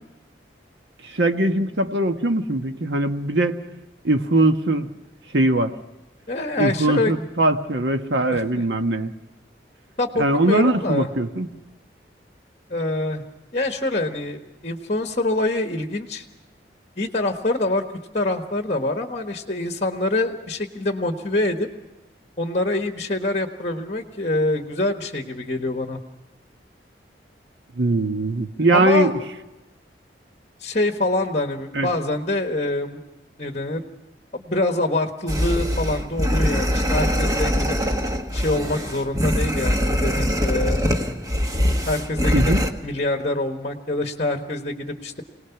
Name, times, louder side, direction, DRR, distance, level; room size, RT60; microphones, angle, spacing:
voice 1, 1.0-3.6 4.0-4.9 5.3-5.7 6.6-9.1 10.2-11.5 27.8-29.1 31.7-31.9 42.3-42.6, right 2 dB, 80° right, 7 dB, 1.3 m, -21 dB
voice 2, 6.3-7.1 8.3-8.6 10.0-11.1 12.7-13.2 13.5-16.2 17.0-17.8 18.1-21.7 22.4-26.0 28.7-29.1 30.6-33.0 33.4-33.8 34.3-37.8 38.3-40.8 41.9-42.5 42.8-45.2, left 2 dB, 40° left, 5 dB, 1.4 m, -25 dB
sound 1, 35.3-42.7, equal, 20° right, 1.4 m, -22 dB
25.5 x 18.5 x 5.9 m, 0.99 s
head